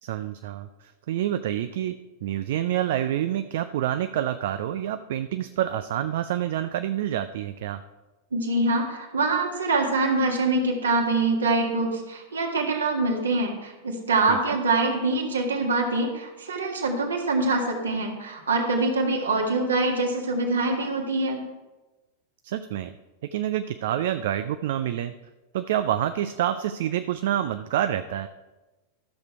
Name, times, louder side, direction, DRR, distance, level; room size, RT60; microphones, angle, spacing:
voice 1, 0.0-7.8 14.3-14.6 22.4-22.9 23.3-25.1 25.5-28.3, right 11 dB, 55° right, 10 dB, 0.4 m, -27 dB
voice 2, 8.3-21.4, right 2 dB, 70° right, 1 dB, 1.8 m, -24 dB
13.0 x 6.6 x 4.6 m, 1.1 s
figure-of-eight pair, 90°, 0 cm